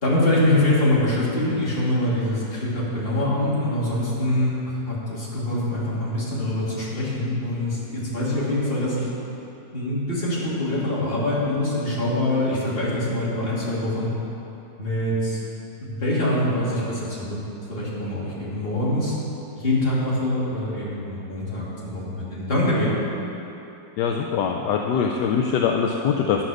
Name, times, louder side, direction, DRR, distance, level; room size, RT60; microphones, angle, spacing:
voice 1, 0.0-9.1 9.7-14.1 14.8-15.4 15.8-17.4 17.7-19.2 19.5-22.9, left 1 dB, 30° left, -8 dB, 2.7 m, -24 dB
voice 2, 24.0-26.4, left 6 dB, 75° left, 2 dB, 1.2 m, -23 dB
10.0 x 7.2 x 6.3 m, 3.0 s
omnidirectional pair, 1.9 m